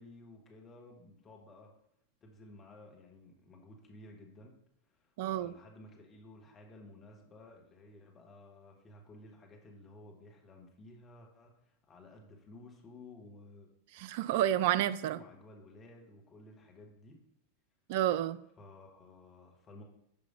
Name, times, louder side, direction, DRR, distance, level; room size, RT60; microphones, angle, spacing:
voice 1, 0.0-1.7 2.2-4.5 4.9-13.7 15.0-17.2 18.6-19.8, left 2 dB, 25° left, 1.5 m, -54 dB
voice 2, 5.2-5.5 14.0-15.2 17.9-18.4, right 12 dB, 50° right, 0.3 m, -30 dB
5.6 x 5.0 x 5.3 m
figure-of-eight pair, 90°, 0 cm